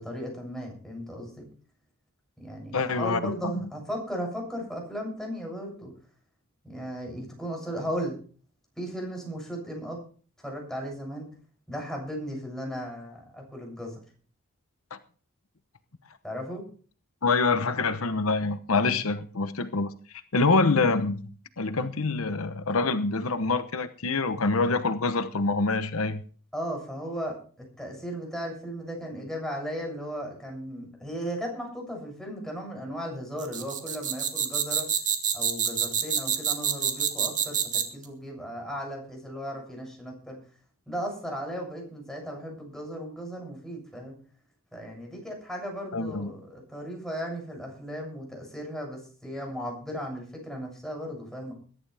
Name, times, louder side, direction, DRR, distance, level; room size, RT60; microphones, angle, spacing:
voice 1, 0.0-1.5 2.4-5.9 6.6-8.2 8.8-10.0 10.4-11.3 11.7-14.0 16.2-16.6 26.5-34.9 35.3-40.4 40.9-44.1 44.7-51.5, equal, ahead, 7.4 m, -36 dB
voice 2, 2.7-3.7 14.9-15.0 17.2-26.2 45.9-46.3, left 3 dB, 80° left, 1.0 m, -26 dB
sound 1, 33.4-38.0, right 8 dB, 35° right, 2.2 m, -27 dB
21.5 x 11.0 x 3.5 m
head